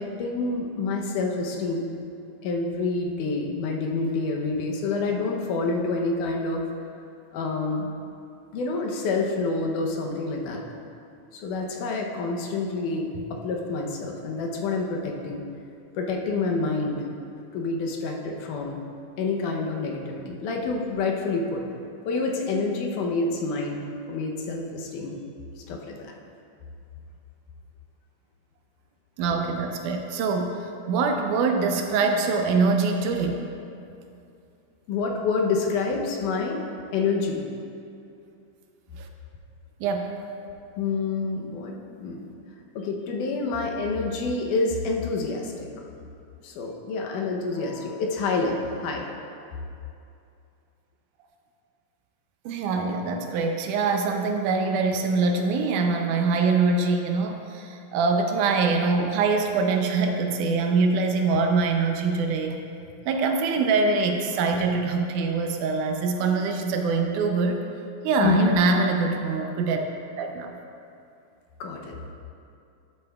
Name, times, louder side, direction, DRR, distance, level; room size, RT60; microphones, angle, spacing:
voice 1, 0.0-1.9 2.4-6.6 7.3-7.9 8.5-10.6 11.3-15.4 16.0-17.0 17.5-18.8 19.2-21.6 22.1-23.8 24.1-25.2 25.7-26.1 34.9-36.6 36.9-37.4 40.8-42.2 42.8-45.9 46.4-49.1 68.2-68.6 71.6-72.0, left 3 dB, 80° left, 0 dB, 2.3 m, -27 dB
voice 2, 29.2-33.5 38.9-39.1 39.8-40.1 52.5-62.6 63.1-67.7 68.0-69.9 70.2-70.5, right 4 dB, 80° right, 4 dB, 2.1 m, -24 dB
11.5 x 8.2 x 2.3 m, 2.6 s
omnidirectional pair, 3.7 m